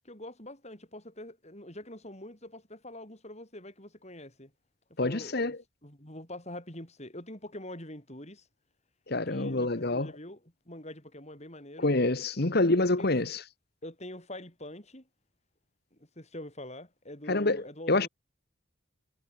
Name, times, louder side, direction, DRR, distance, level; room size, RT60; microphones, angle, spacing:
voice 1, 0.0-4.5 5.0-5.6 5.8-8.5 9.3-11.9 12.4-12.5 12.8-13.1 13.8-15.1 15.9-18.1, left 1 dB, 30° left, 8.0 m, -44 dB
voice 2, 5.0-5.6 9.1-10.1 11.8-13.4 17.3-17.6 17.9-18.1, left 2 dB, 50° left, 1.4 m, -26 dB
head